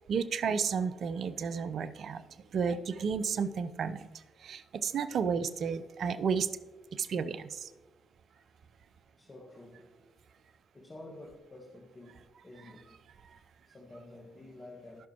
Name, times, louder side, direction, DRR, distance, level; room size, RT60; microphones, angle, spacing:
voice 1, 0.1-2.2 2.5-4.1 4.4-6.5 7.0-7.7, right 6 dB, 60° right, 12 dB, 0.5 m, -32 dB
voice 2, 5.0-5.9 7.2-7.3 9.2-10.2 10.7-13.0 13.7-15.1, left 1 dB, 30° left, -1 dB, 1.6 m, -51 dB
16.5 x 6.0 x 3.0 m, 1.2 s
hypercardioid pair, 45°, 0 cm